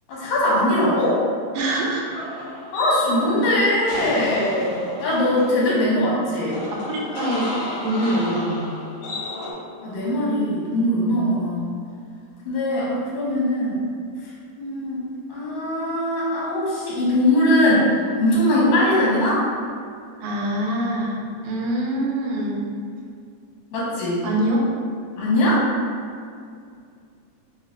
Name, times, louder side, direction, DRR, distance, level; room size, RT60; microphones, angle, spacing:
voice 1, 0.1-1.2 2.7-6.6 9.8-11.8 12.5-13.8 14.2-15.0 15.3-19.4 23.7-24.2 25.2-25.6, left 1 dB, 90° left, -7 dB, 2.6 m, -21 dB
voice 2, 1.6-2.0 6.7-7.5 7.8-8.7 20.2-22.7 24.2-24.7, right 1 dB, 80° right, -3 dB, 2.0 m, -24 dB
sound 1, 1.8-9.5, left 1 dB, 75° left, 1.3 m, -32 dB
6.3 x 2.4 x 2.4 m, 2.3 s
omnidirectional pair, 3.5 m